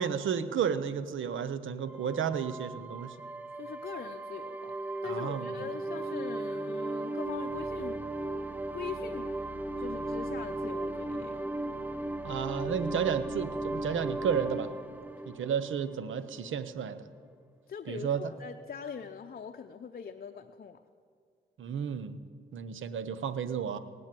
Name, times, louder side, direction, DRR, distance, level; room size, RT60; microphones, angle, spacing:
voice 1, 0.0-3.1 5.0-5.5 12.2-14.7 15.3-17.0 17.9-18.2 21.6-22.2 22.5-23.8, right 7 dB, 75° right, 13 dB, 0.7 m, -32 dB
sound 1, 1.9-16.3, right 2 dB, 10° right, 0.8 m, -36 dB
voice 2, 3.6-4.8 5.0-8.2 8.7-9.4 9.8-11.4 17.7-20.8, left 6 dB, 50° left, 6 dB, 0.6 m, -42 dB
18.5 x 8.1 x 7.5 m, 2.2 s
cardioid pair, 50°, 20 cm